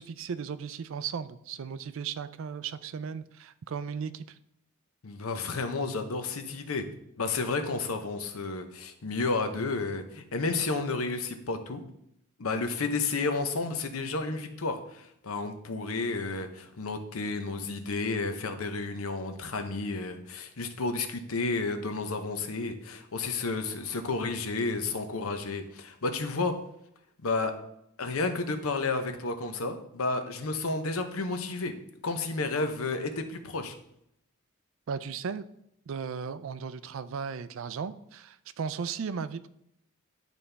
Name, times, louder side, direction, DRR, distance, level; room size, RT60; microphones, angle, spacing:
voice 1, 0.0-4.4 34.9-35.4 35.9-39.5, right 6 dB, 65° right, 14 dB, 0.4 m, -36 dB
voice 2, 5.0-6.9 7.2-11.8 12.4-26.6 27.2-27.5 28.0-31.8 32.0-33.7, left 3 dB, 90° left, 8 dB, 0.8 m, -31 dB
10.5 x 4.1 x 3.4 m, 0.76 s
head